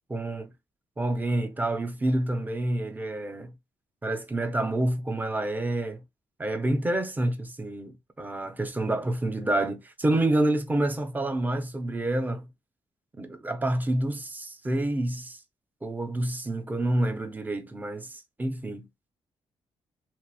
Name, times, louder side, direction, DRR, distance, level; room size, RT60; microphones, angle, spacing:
voice 1, 0.1-0.5 1.0-3.5 4.0-6.0 6.4-12.5 13.2-15.4 15.8-18.9, right 1 dB, 20° right, 0.6 m, -28 dB
2.8 x 2.5 x 2.3 m
cardioid pair, 90°, 10 cm